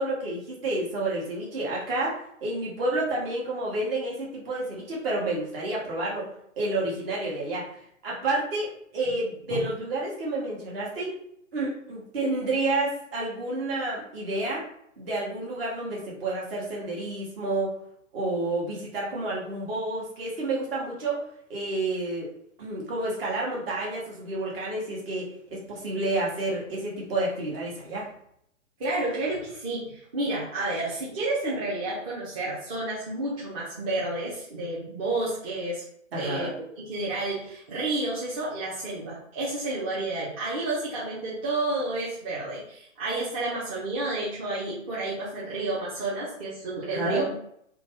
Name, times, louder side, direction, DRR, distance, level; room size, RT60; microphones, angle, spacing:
voice 1, 0.0-6.3 6.6-7.7 8.0-11.2 11.5-14.6 15.0-17.7 18.1-21.2 21.5-22.3 22.6-28.1 36.1-36.5 46.9-47.2, right 2 dB, 45° right, -4 dB, 1.3 m, -30 dB
voice 2, 28.8-35.8 36.1-47.3, right 2 dB, 25° right, -8 dB, 0.7 m, -30 dB
2.9 x 2.3 x 2.9 m, 0.71 s
figure-of-eight pair, 120°, 39 cm